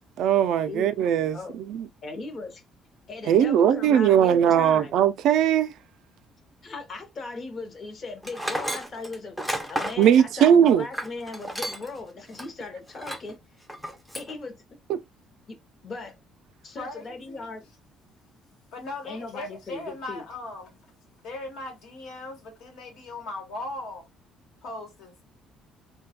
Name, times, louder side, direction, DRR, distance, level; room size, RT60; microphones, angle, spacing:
voice 1, 0.2-1.9 3.3-5.7 10.0-10.9, right 9 dB, 70° right, 0.3 m, -19 dB
voice 2, 2.0-2.6 3.1-4.9 6.6-13.4 14.1-14.5 15.5-16.2 16.6-17.7 19.0-20.2, left 3 dB, 35° left, 0.7 m, -38 dB
Tools, 8.2-12.0 12.3-12.5 13.0-13.3 13.7-14.3, right 1 dB, ahead, 0.5 m, -32 dB
voice 3, 16.8-17.5 18.7-20.8 21.2-24.1 24.6-25.2, left 2 dB, 75° left, 1.1 m, -38 dB
3.2 x 2.2 x 2.7 m
cardioid pair, 135°, 0 cm